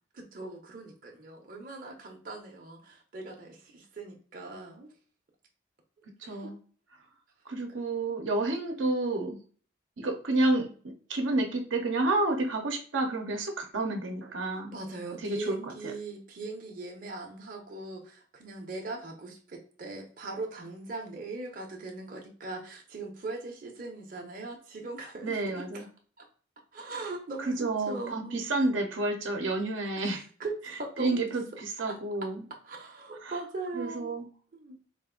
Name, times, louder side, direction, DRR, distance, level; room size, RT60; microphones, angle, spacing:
voice 1, 0.1-4.9 6.2-6.5 10.6-10.7 14.5-25.9 26.2-26.3 26.7-28.4 30.4-31.3 31.9-32.0 32.6-34.1 34.5-34.8, right 3 dB, 45° right, 0 dB, 0.7 m, -40 dB
voice 2, 6.2-6.6 7.5-9.4 10.0-10.7 11.1-14.7 15.2-15.7 25.2-25.9 27.5-30.2 31.0-32.4 33.2-33.3 33.7-34.3, right 2 dB, 80° right, 2 dB, 0.8 m, -30 dB
4.0 x 2.5 x 3.7 m, 0.43 s
head